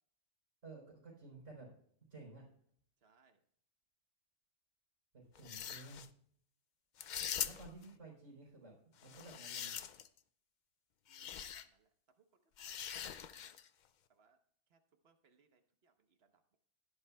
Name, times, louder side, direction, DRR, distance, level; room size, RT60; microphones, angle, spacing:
voice 1, 0.6-1.7 2.1-2.4 5.1-6.1 7.4-9.7, right 3 dB, 85° right, -3 dB, 4.2 m, -54 dB
voice 2, 3.0-3.4 11.1-11.9 12.2-13.5 14.1-14.4 14.7-16.6, right 5 dB, 55° right, 7 dB, 1.2 m, -73 dB
sound 1, 5.4-6.1 7.0-7.9 9.0-10.2 11.1-11.6 12.6-13.7, left 9 dB, 60° left, 0.5 m, -43 dB
15.5 x 10.5 x 2.3 m, 0.65 s
omnidirectional pair, 1.3 m